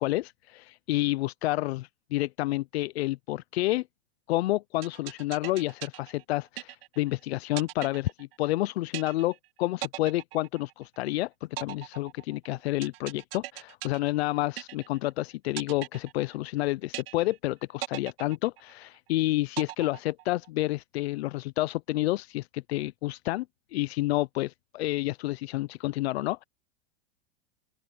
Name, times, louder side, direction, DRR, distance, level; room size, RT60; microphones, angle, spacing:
voice 1, 0.0-3.9 4.3-23.5 23.7-26.4, left 17 dB, 80° left, 0.5 m, -29 dB
sound 1, 4.8-7.1 7.6-8.6 8.9-9.5 9.8-11.1 11.6-15.1 15.6-16.6 16.9-17.5 17.8-19.1 19.6-20.6, right 16 dB, 65° right, 2.4 m, -40 dB
open air
supercardioid pair, 165°, 31 cm